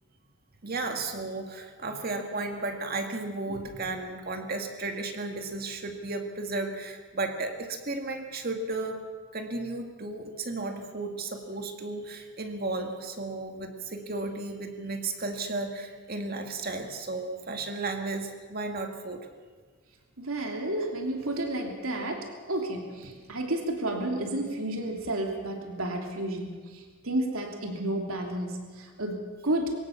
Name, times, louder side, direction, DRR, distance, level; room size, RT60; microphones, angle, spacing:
voice 1, 0.6-9.0 9.3-19.2, right 3 dB, 45° right, 4 dB, 2.0 m, -34 dB
voice 2, 20.2-29.7, right 1 dB, 80° right, 2 dB, 3.0 m, -31 dB
22.5 x 17.5 x 7.2 m, 1.5 s
head